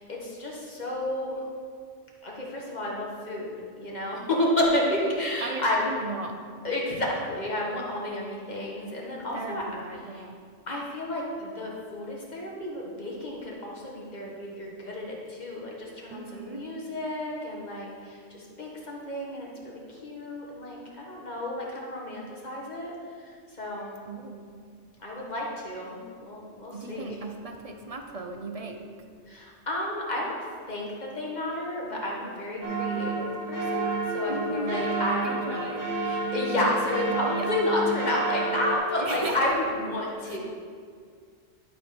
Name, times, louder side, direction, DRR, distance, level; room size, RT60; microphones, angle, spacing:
voice 1, 0.0-1.3 2.2-5.8 6.6-9.6 10.1-10.2 10.7-24.0 25.0-27.2 29.3-30.3 30.7-35.6 36.0-40.4, left 1 dB, 35° left, -3 dB, 1.6 m, -31 dB
voice 2, 4.8-6.3 9.3-10.4 16.1-16.7 24.1-24.5 26.7-28.8 34.3-34.8 35.2-35.8 37.3-37.5 39.0-39.5 40.3-40.4, right 3 dB, 35° right, 4 dB, 0.6 m, -36 dB
sound 1, 32.6-38.7, right 3 dB, 15° right, 1.3 m, -30 dB
11.5 x 5.0 x 5.2 m, 2.1 s
omnidirectional pair, 1.4 m